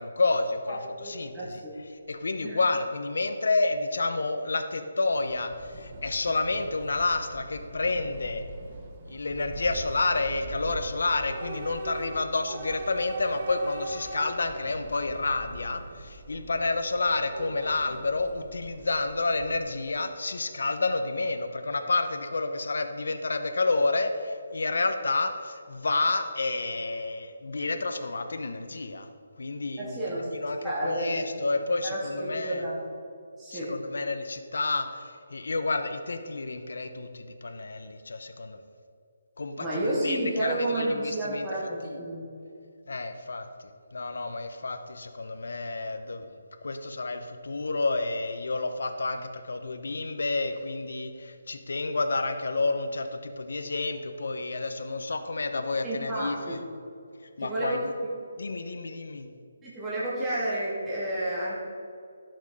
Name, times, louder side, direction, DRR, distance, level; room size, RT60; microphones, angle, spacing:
voice 1, 0.0-1.6 1.9-8.4 9.1-29.1 29.4-30.0 30.3-32.7 33.5-38.6 39.4-41.5 41.8-42.0 42.9-46.3 46.6-56.6 57.4-57.9 58.4-59.3, left 3 dB, 75° left, 7 dB, 0.9 m, -30 dB
voice 2, 0.7-1.7 2.4-2.6 29.8-30.3 30.6-31.2 31.8-32.8 33.4-33.7 39.6-42.3 55.8-56.6 57.4-58.1 59.6-61.6, right 1 dB, 10° right, -9 dB, 2.3 m, -31 dB
Train / Subway metro underground, 5.1-19.9, right 2 dB, 30° right, 1.2 m, -42 dB
12.0 x 6.5 x 4.8 m, 2.6 s
hypercardioid pair, 160°, 0 cm